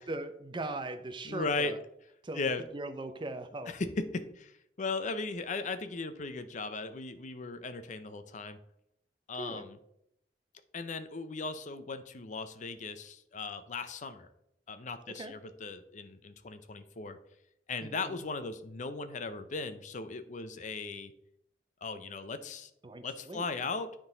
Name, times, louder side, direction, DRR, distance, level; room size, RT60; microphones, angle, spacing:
voice 1, 0.0-1.8 2.2-2.5 2.7-3.7 9.3-9.6 15.1-15.3 17.8-18.2 22.8-23.4, right 2 dB, 30° right, 9 dB, 0.6 m, -39 dB
voice 2, 1.2-1.7 2.4-2.6 3.7-8.6 9.3-9.8 10.7-14.3 14.7-17.2 17.7-21.1 21.8-22.7 23.0-23.9, left 3 dB, 45° left, 11 dB, 0.6 m, -37 dB
9.7 x 3.8 x 3.9 m, 0.77 s
head